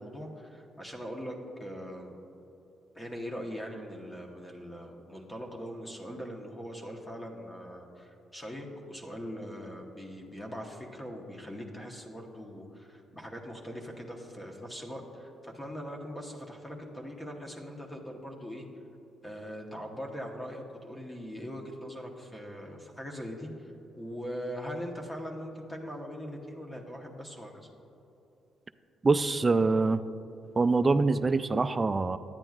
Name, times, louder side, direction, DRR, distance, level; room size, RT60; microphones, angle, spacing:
voice 1, 0.0-2.2 2.9-18.6 19.2-23.7 24.0-27.7, equal, 15° left, 1 dB, 1.0 m, -41 dB
voice 2, 29.0-30.0 30.6-32.2, right 3 dB, 25° right, 12 dB, 0.3 m, -24 dB
10.5 x 8.9 x 2.4 m, 3.0 s
cardioid pair, 90°, 0 cm